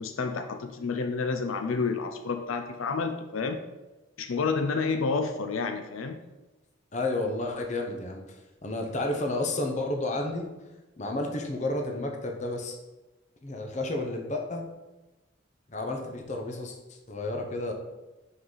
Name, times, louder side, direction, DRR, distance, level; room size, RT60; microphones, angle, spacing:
voice 1, 0.0-3.6 4.2-6.2, left 4 dB, 80° left, 7 dB, 0.5 m, -29 dB
voice 2, 6.9-8.2 8.6-10.4 11.0-12.7 13.4-14.6 15.7-16.8 17.1-17.7, left 2 dB, 35° left, 3 dB, 0.8 m, -31 dB
5.7 x 5.6 x 3.9 m, 1.1 s
head